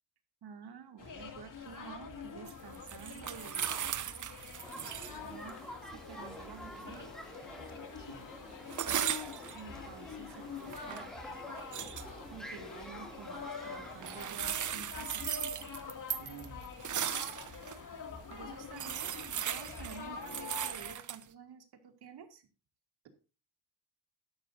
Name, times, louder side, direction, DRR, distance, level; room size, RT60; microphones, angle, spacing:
voice 1, 0.4-4.1 5.2-7.1 8.7-8.8 9.2-9.3 9.5-11.1 12.3-15.3 18.3-22.5, right 7 dB, 60° right, 6 dB, 2.4 m, -50 dB
sound 1, 1.0-20.9, left 5 dB, 45° left, 2.6 m, -46 dB
sound 2, 2.5-5.2 5.5-5.6 8.7-9.6 10.5-11.1 11.6-12.0 14.0-17.8 18.3-18.4 18.7-21.2, right 10 dB, 45° right, 0.8 m, -37 dB
sound 3, 4.6-14.3, equal, ahead, 2.6 m, -49 dB
voice 2, 16.1-16.7, right 6 dB, 80° right, 5 dB, 2.6 m, -50 dB
12.0 x 11.5 x 2.7 m, 0.33 s
cardioid pair, 85°, 44 cm